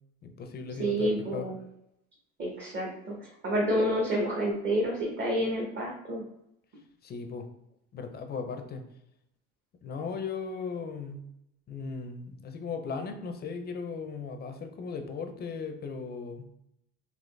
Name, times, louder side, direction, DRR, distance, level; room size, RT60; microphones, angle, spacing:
voice 1, 0.2-1.4 7.0-7.5 7.9-8.8 9.8-11.2 11.7-16.4, left 5 dB, 30° left, 6 dB, 0.5 m, -37 dB
voice 2, 0.8-1.6 2.4-6.2, equal, 30° right, -2 dB, 0.9 m, -29 dB
4.0 x 2.9 x 3.2 m, 0.80 s
cardioid pair, 135°, 33 cm